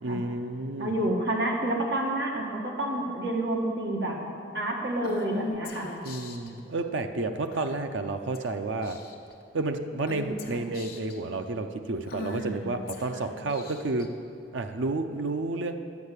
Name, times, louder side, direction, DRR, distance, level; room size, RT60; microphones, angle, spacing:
voice 1, 0.0-0.9 6.0-9.0 9.5-14.1 14.5-15.7, right 2 dB, 85° right, 6 dB, 0.6 m, -31 dB
voice 2, 0.8-4.2 4.5-5.9, right 1 dB, 65° right, -1 dB, 1.7 m, -28 dB
Female speech woman speaking / Whispering, 5.0-6.5 7.5-7.9 8.3-8.5 8.8-9.3 10.1-11.2 12.1-14.1, left 2 dB, 50° left, 1.0 m, -39 dB
10.5 x 5.6 x 8.2 m, 2.6 s
head